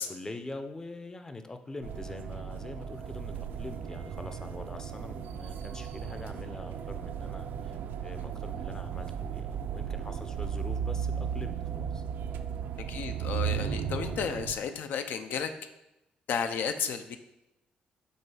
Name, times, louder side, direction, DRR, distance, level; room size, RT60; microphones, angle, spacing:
voice 1, 0.0-12.0, left 2 dB, 20° left, 8 dB, 0.5 m, -44 dB
sound 1, 1.8-14.5, right 8 dB, 80° right, 0.4 m, -35 dB
voice 2, 12.9-15.5 16.3-17.2, left 7 dB, 80° left, 8 dB, 0.5 m, -32 dB
5.3 x 3.7 x 4.8 m, 0.89 s
cardioid pair, 110°, 3 cm